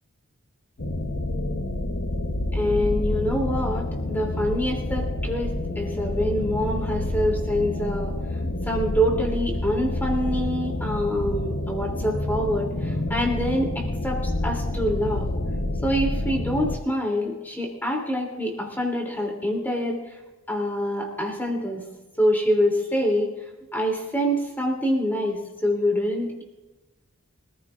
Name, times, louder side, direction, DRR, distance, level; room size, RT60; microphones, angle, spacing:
sound 1, 0.8-16.8, left 1 dB, 50° left, 1.0 m, -28 dB
voice 1, 2.5-15.3 15.8-20.2 20.5-21.8 22.2-23.3 23.7-26.4, equal, 10° left, 0 dB, 3.0 m, -26 dB
25.0 x 15.0 x 2.5 m, 1.1 s
head